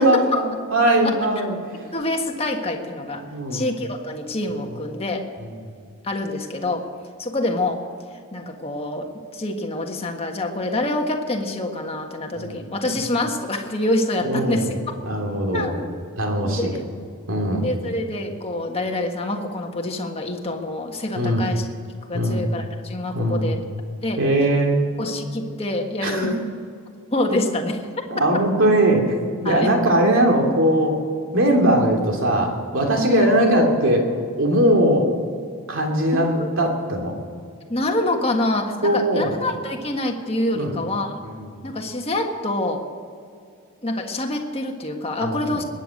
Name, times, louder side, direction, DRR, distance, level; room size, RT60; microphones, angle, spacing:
voice 1, 0.0-1.6 3.2-3.6 5.4-5.5 12.3-12.6 12.9-13.0 14.2-14.7 15.0-15.7 16.2-16.7 17.3-17.8 21.2-21.4 22.1-22.4 23.1-23.5 24.2-24.8 26.0-26.3 27.3-27.4 28.1-29.1 29.4-31.0 31.3-34.1 34.4-35.1 35.7-37.2 38.8-39.4 40.5-40.8 41.4-41.5 45.2-45.6, right 1 dB, 60° right, 1 dB, 3.0 m, -20 dB
voice 2, 1.9-5.2 6.0-6.9 7.2-7.8 8.3-9.1 9.3-14.7 15.5-15.9 16.4-16.8 17.6-21.7 22.0-23.6 24.0-24.2 25.0-26.4 27.1-27.8 29.4-29.7 33.1-33.3 36.1-36.5 37.7-41.2 41.6-42.8 43.8-45.6, left 1 dB, 25° left, 2 dB, 1.5 m, -26 dB
22.0 x 9.3 x 6.5 m, 2.3 s
head